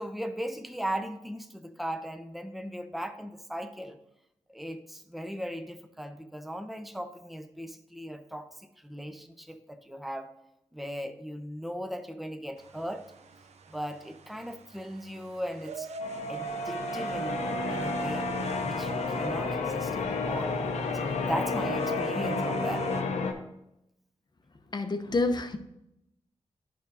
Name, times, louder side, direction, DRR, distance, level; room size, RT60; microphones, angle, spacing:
voice 1, 0.0-4.0 4.5-10.3 10.7-13.0 13.7-15.9 16.3-18.3 18.6-20.6 20.9-22.9, equal, ahead, 8 dB, 0.8 m, -38 dB
sound 1, 12.6-23.0, right 6 dB, 70° right, 0.6 m, -40 dB
Church bell, 16.0-23.3, left 4 dB, 80° left, 0.8 m, -31 dB
voice 2, 24.7-25.6, left 2 dB, 40° left, 7 dB, 0.9 m, -28 dB
10.0 x 5.4 x 2.7 m, 0.85 s
supercardioid pair, 45°, 12 cm